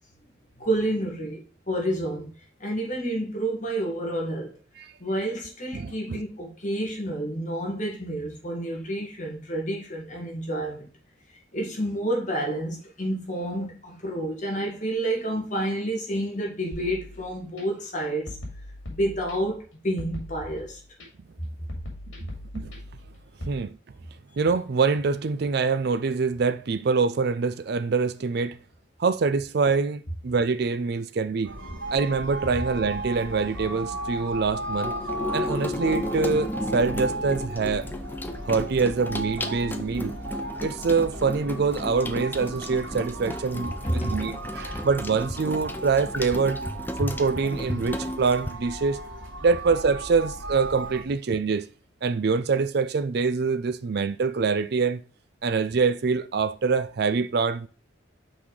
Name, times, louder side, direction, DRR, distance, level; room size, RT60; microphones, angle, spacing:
voice 1, 0.6-2.3 2.6-4.6 5.0-10.9 11.5-18.4 18.9-20.8 43.8-44.2, right 1 dB, 40° left, 1.9 m, -29 dB
voice 2, 5.7-6.2 22.5-22.7 23.5-23.8 24.4-28.6 29.0-31.5 31.9-34.9 35.3-37.9 38.4-40.2 40.6-46.6 47.0-49.0 49.4-51.7 52.0-55.0 55.4-57.7, right 4 dB, 55° right, 0.4 m, -25 dB
sound 1, 16.7-17.6 18.3-19.6 20.0-21.1 21.7-23.6, left 1 dB, 80° left, 2.4 m, -40 dB
sound 2, 31.4-51.0, right 1 dB, 80° right, 2.1 m, -36 dB
Water tap faucet / Sink (filling or washing), 34.7-48.5, left 1 dB, 10° left, 0.5 m, -34 dB
6.0 x 4.1 x 4.7 m
head